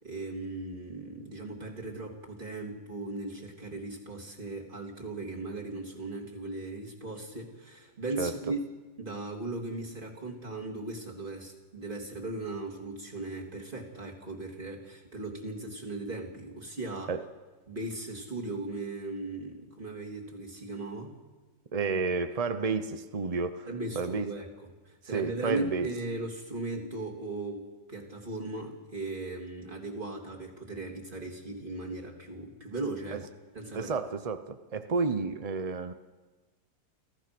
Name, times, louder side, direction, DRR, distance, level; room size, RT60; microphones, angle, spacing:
voice 1, 0.0-8.6 9.0-17.1 17.7-21.2 23.7-33.2 33.5-33.9, right 2 dB, 25° right, 3.3 m, -38 dB
voice 2, 21.7-23.7 24.0-24.3 25.1-25.9 33.1-33.2 33.7-35.9, right 4 dB, 55° right, 0.4 m, -31 dB
29.5 x 15.0 x 6.1 m
omnidirectional pair, 2.0 m